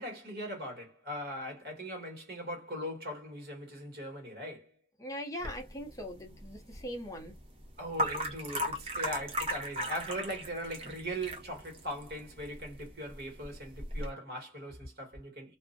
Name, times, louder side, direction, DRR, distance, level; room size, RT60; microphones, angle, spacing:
voice 1, 0.0-4.7 7.8-15.6, equal, 60° right, 1.3 m, -40 dB
voice 2, 5.0-7.3, equal, 20° left, 0.5 m, -41 dB
sound 1, 5.4-14.1, equal, 30° right, 0.7 m, -38 dB
2.5 x 2.0 x 2.5 m
head